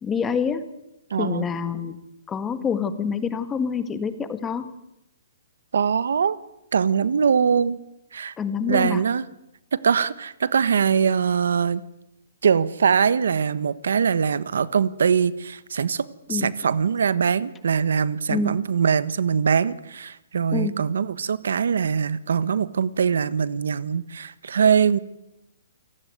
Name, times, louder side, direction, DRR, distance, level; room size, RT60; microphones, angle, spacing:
voice 1, 0.0-0.7 1.2-2.0 2.3-4.7 8.4-9.0 16.3-16.5 18.3-18.5 20.5-20.8, left 6 dB, 10° left, 11 dB, 1.7 m, -26 dB
voice 2, 1.1-1.5 5.7-6.4 6.7-7.8 8.1-8.3 8.7-9.2 9.7-11.8 12.4-25.0, right 6 dB, 80° right, 16 dB, 1.4 m, -22 dB
28.5 x 18.0 x 9.5 m, 0.87 s
hypercardioid pair, 165°, 0 cm